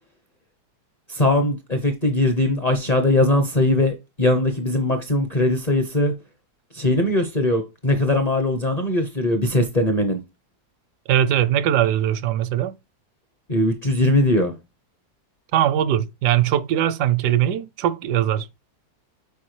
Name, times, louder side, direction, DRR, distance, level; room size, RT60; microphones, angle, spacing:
voice 1, 1.1-6.1 6.7-10.2 13.5-14.5, left 1 dB, 40° left, 0.6 m, -20 dB
voice 2, 11.1-12.8 15.5-18.5, right 11 dB, 80° right, 1.1 m, -20 dB
6.9 x 4.8 x 3.2 m
omnidirectional pair, 1.8 m